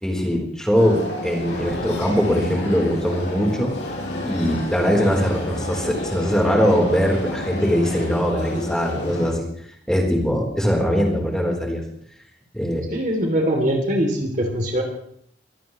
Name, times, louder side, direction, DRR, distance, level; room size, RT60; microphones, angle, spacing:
voice 1, 0.0-3.7 4.2-9.5 9.9-11.8 12.5-12.9, equal, 5° left, -1 dB, 4.0 m, -21 dB
sound 1, 0.7-9.3, left 1 dB, 75° left, 5.5 m, -30 dB
voice 2, 12.9-14.8, equal, 45° right, 2 dB, 3.2 m, -22 dB
24.0 x 17.0 x 3.3 m, 0.65 s
head